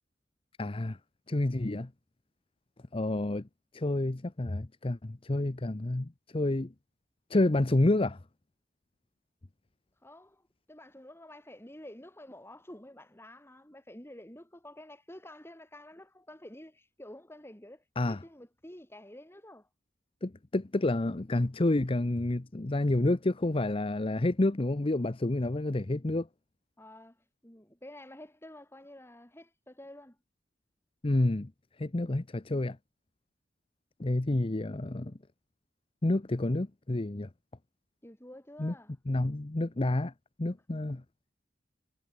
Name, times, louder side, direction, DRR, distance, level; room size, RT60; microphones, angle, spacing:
voice 1, 0.6-1.0 1.3-1.9 2.9-3.4 3.7-6.7 7.3-8.2 18.0-18.2 20.2-26.3 31.0-31.5 31.8-32.8 34.0-35.1 36.0-37.3 38.6-38.7 39.1-40.1 40.4-41.0, left 2 dB, 30° left, 0.7 m, -29 dB
voice 2, 10.0-19.7 26.8-27.2 27.4-30.2 38.0-39.0, left 1 dB, 15° left, 5.4 m, -50 dB
head